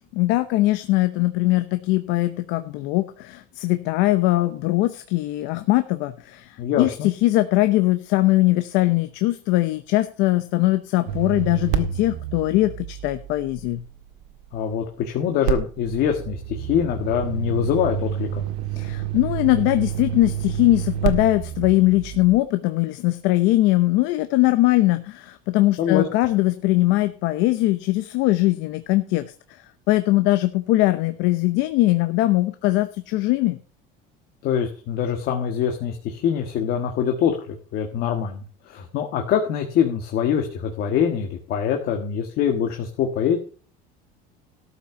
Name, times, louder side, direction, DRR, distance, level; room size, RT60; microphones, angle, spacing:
voice 1, 0.1-13.8 18.7-33.6, left 17 dB, 65° left, 10 dB, 0.9 m, -21 dB
voice 2, 6.6-7.1 14.5-18.4 25.8-26.1 34.4-43.4, left 8 dB, 50° left, 4 dB, 1.6 m, -24 dB
sound 1, 11.1-14.2 15.5-22.4, right 10 dB, 90° right, 1.8 m, -29 dB
13.0 x 6.0 x 6.9 m, 0.41 s
cardioid pair, 165°, 21 cm